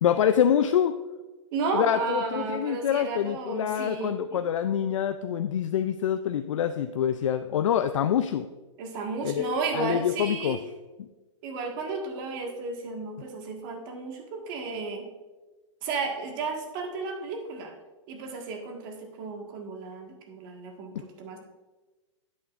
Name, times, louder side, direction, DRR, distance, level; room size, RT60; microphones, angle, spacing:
voice 1, 0.0-1.0 1.7-8.5 9.2-10.6 11.0-11.1, left 9 dB, 75° left, 9 dB, 0.5 m, -26 dB
voice 2, 1.5-4.4 8.8-10.6 11.4-15.1 15.8-17.7 18.1-21.4, right 4 dB, 40° right, 2 dB, 1.7 m, -33 dB
10.5 x 8.6 x 2.5 m, 1.2 s
hypercardioid pair, 140°, 16 cm